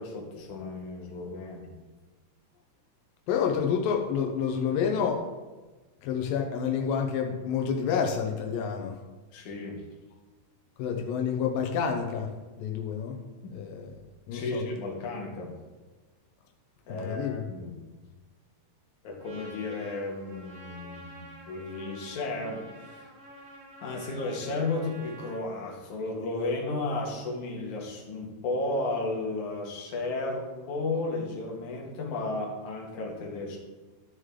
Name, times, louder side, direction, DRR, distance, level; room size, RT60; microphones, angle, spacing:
voice 1, 0.0-1.7 9.3-9.8 13.4-13.5 14.3-15.5 16.9-17.8 19.0-23.1 23.8-33.6, left 2 dB, 65° left, -1 dB, 2.9 m, -34 dB
voice 2, 3.3-5.2 6.0-9.0 10.8-12.3 12.6-13.2 13.5-13.9 14.3-14.6 17.0-17.4, left 7 dB, 90° left, 2 dB, 2.6 m, -28 dB
Trumpet, 19.2-25.4, equal, 85° right, 4.3 m, -48 dB
12.5 x 6.5 x 3.7 m, 1.3 s
omnidirectional pair, 3.9 m